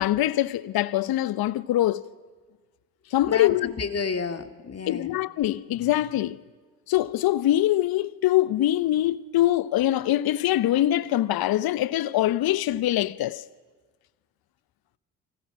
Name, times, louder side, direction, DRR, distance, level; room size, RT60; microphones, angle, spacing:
voice 1, 0.0-2.0 3.1-3.7 4.9-6.4 6.9-13.4, left 14 dB, 55° left, 1.0 m, -23 dB
voice 2, 3.3-5.1, left 5 dB, 35° left, 2.6 m, -31 dB
29.5 x 25.0 x 6.2 m
hypercardioid pair, 45°, 43 cm